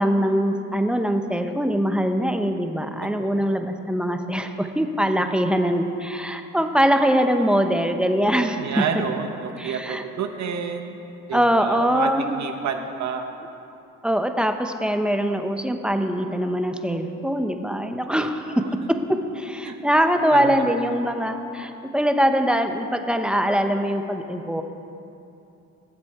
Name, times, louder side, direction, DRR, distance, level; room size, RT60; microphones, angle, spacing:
voice 1, 0.0-8.8 9.6-10.0 11.3-12.4 14.0-18.4 19.1-24.6, equal, 5° right, 6 dB, 0.8 m, -22 dB
voice 2, 3.0-3.7 5.2-5.3 8.6-11.0 11.3-13.3 18.2-18.3 18.6-18.7 19.6-19.7 20.3-21.0, right 6 dB, 65° right, 5 dB, 1.0 m, -30 dB
17.5 x 7.5 x 4.8 m, 2.8 s
cardioid pair, 90°, 30 cm